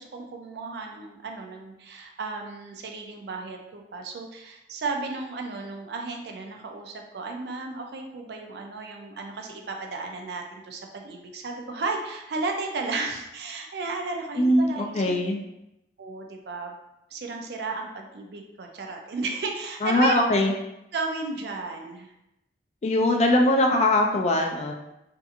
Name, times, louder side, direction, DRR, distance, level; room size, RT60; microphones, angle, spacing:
voice 1, 0.0-15.2 16.0-16.8 17.1-20.2 20.9-22.1, right 3 dB, 65° right, 2 dB, 0.4 m, -34 dB
voice 2, 14.4-15.4 19.8-20.5 22.8-24.7, left 1 dB, 40° left, 2 dB, 0.3 m, -21 dB
2.6 x 2.5 x 2.4 m, 0.90 s
head